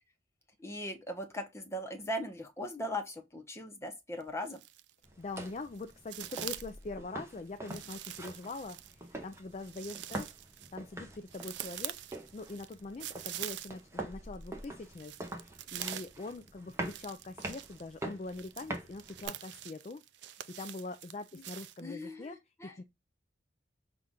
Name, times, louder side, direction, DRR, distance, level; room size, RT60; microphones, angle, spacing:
voice 1, 0.6-4.6 21.8-22.8, left 1 dB, 15° left, 0.8 m, -39 dB
sound 1, 4.2-5.0 5.4-6.8 7.7-14.0 14.3-21.8, right 12 dB, 65° right, 0.4 m, -45 dB
sound 2, 5.0-19.3, right 1 dB, 15° right, 0.8 m, -45 dB
voice 2, 5.2-10.3 10.7-12.0 12.3-22.4 22.6-22.8, left 3 dB, 35° left, 0.3 m, -43 dB
5.6 x 2.5 x 3.6 m
head